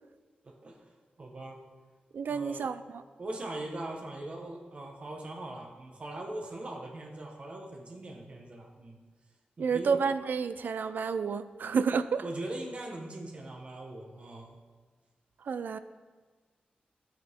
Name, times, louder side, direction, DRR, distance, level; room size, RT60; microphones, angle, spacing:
voice 1, 0.4-0.9 1.2-1.6 2.2-2.6 3.2-9.0 9.6-10.0 11.5-11.7 12.2-14.6, right 1 dB, 40° right, 0 dB, 1.3 m, -41 dB
voice 2, 2.1-3.0 9.6-12.2 15.5-15.8, right 5 dB, 75° right, 13 dB, 0.5 m, -30 dB
13.0 x 10.5 x 3.7 m, 1.4 s
wide cardioid pair, 180°, 3 cm